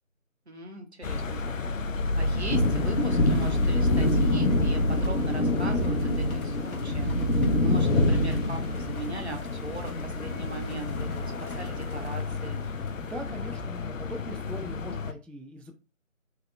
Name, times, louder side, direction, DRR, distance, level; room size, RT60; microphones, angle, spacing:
voice 1, 0.5-1.6 2.2-12.6, right 2 dB, 50° right, 3 dB, 0.8 m, -40 dB
sound 1, 1.0-15.1, left 2 dB, 65° left, 0.5 m, -31 dB
sound 2, 2.5-12.6, left 1 dB, 90° left, 0.8 m, -27 dB
voice 2, 13.0-15.8, equal, 5° left, 4 dB, 0.3 m, -41 dB
3.5 x 2.2 x 3.1 m, 0.30 s
figure-of-eight pair, 170°, 42 cm